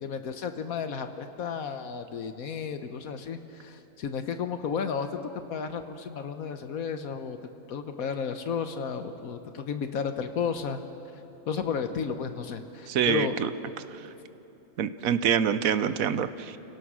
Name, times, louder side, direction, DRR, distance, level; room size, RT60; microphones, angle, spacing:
voice 1, 0.0-5.2 5.5-7.4 7.7-10.8 11.5-13.3, left 6 dB, 75° left, 8 dB, 1.3 m, -33 dB
voice 2, 12.9-13.5 14.0-14.1 14.8-16.6, right 8 dB, 70° right, 13 dB, 1.2 m, -26 dB
30.0 x 17.5 x 6.2 m, 2.9 s
omnidirectional pair, 1.5 m